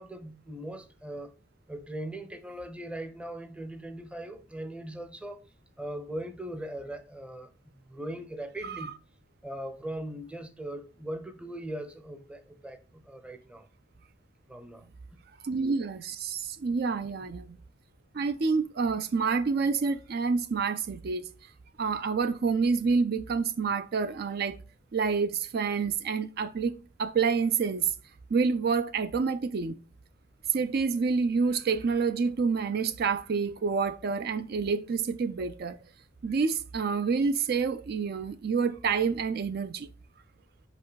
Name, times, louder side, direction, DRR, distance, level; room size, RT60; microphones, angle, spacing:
voice 1, 0.0-1.3 1.7-5.4 5.8-7.5 7.9-8.9 9.4-13.7 14.5-15.2, right 1 dB, 5° right, 0.6 m, -40 dB
voice 2, 15.4-17.6 18.1-21.3 21.8-24.6 24.9-27.9 28.3-29.8 30.5-35.8 36.2-39.9, right 5 dB, 55° right, 0.4 m, -28 dB
5.4 x 5.1 x 3.9 m
head